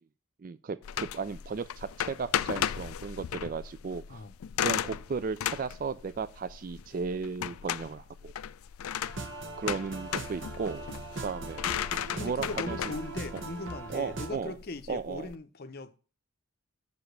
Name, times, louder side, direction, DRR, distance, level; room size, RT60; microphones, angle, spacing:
voice 1, 0.4-4.2 4.6-8.3 9.6-10.9 11.2-11.7 12.2-12.8 13.3-13.4 13.9-14.5 14.9-15.3, right 5 dB, 40° right, 0.3 m, -35 dB
sound 1, 0.8-15.3, left 10 dB, 85° left, 0.4 m, -36 dB
sound 2, 9.0-14.3, right 3 dB, 60° right, 0.9 m, -40 dB
voice 2, 12.1-16.0, left 3 dB, 45° left, 0.6 m, -39 dB
6.9 x 4.9 x 6.5 m
head